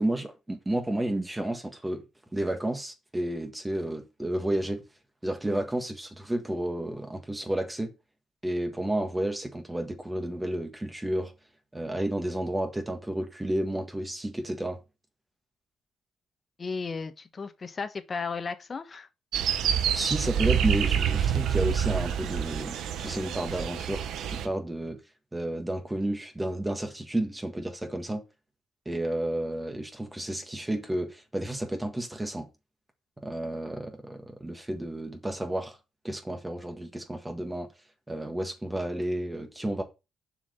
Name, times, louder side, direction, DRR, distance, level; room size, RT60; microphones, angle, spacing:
voice 1, 0.0-2.0 2.3-4.8 5.2-7.9 8.4-11.3 11.7-14.8 19.7-24.1 24.4-25.0 25.3-28.2 28.8-32.5 33.2-35.8 36.0-37.7 38.1-39.8, right 1 dB, 15° right, 1.6 m, -31 dB
voice 2, 16.6-19.1, left 4 dB, 35° left, 1.3 m, -34 dB
sound 1, 19.3-24.5, right 9 dB, 80° right, 1.1 m, -27 dB
7.1 x 5.0 x 6.7 m
cardioid pair, 90°, 0 cm